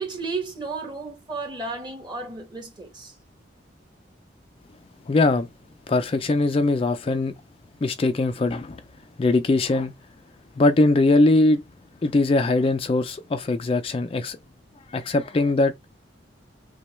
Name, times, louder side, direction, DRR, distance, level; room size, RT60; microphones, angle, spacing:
voice 1, 0.0-3.2, right 3 dB, 25° right, 1.4 m, -33 dB
voice 2, 5.1-5.5 5.9-7.3 7.8-8.8 9.2-9.9 10.6-11.6 12.0-14.4 14.9-15.7, left 2 dB, 30° left, 0.3 m, -21 dB
5.9 x 2.2 x 3.1 m
head